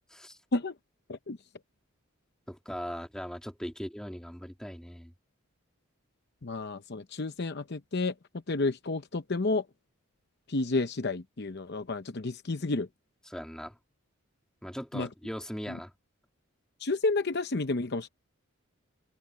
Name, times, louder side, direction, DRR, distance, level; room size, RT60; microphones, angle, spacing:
voice 1, 2.5-5.1 13.3-13.8 14.6-15.9, equal, 5° left, 2.4 m, -39 dB
voice 2, 6.4-8.1 8.5-9.7 10.5-12.9 14.9-15.1 15.7-15.8 16.8-18.1, left 3 dB, 50° left, 0.8 m, -31 dB
head